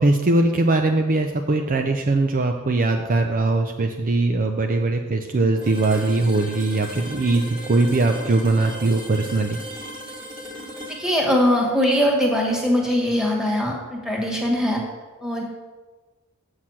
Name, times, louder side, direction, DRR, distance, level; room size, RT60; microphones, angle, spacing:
voice 1, 0.0-9.6, right 2 dB, 40° right, 4 dB, 0.6 m, -21 dB
sound 1, 5.6-13.4, equal, 20° right, 1.9 m, -38 dB
voice 2, 11.0-14.8 15.2-15.4, equal, 5° right, -2 dB, 1.8 m, -21 dB
7.7 x 6.4 x 7.3 m, 1.3 s
head